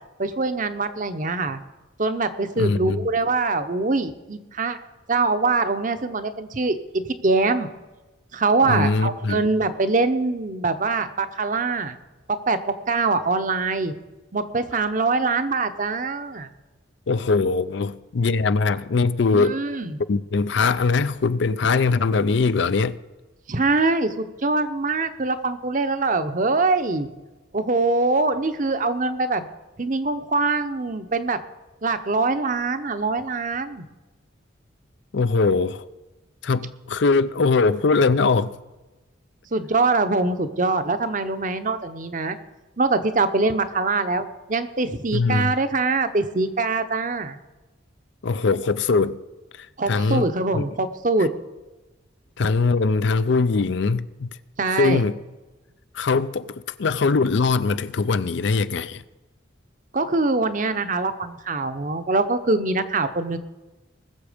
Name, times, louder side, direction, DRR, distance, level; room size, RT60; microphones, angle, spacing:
voice 1, 0.2-1.6 2.0-4.8 5.1-7.7 8.3-12.0 12.3-12.6 12.9-13.9 14.3-16.5 19.3-20.0 23.5-27.1 27.5-29.5 29.8-31.4 31.8-33.8 39.5-42.4 42.8-47.4 49.8-51.3 54.6-55.0 59.9-63.4, right 3 dB, 40° right, 0.8 m, -23 dB
voice 2, 2.6-3.1 8.7-9.4 17.1-19.6 20.1-23.0 35.1-35.8 36.4-38.6 45.1-45.5 48.2-49.2 49.6-50.7 52.4-54.3 54.8-55.2 55.9-59.0, left 4 dB, 65° left, 0.5 m, -21 dB
20.5 x 7.1 x 5.1 m
head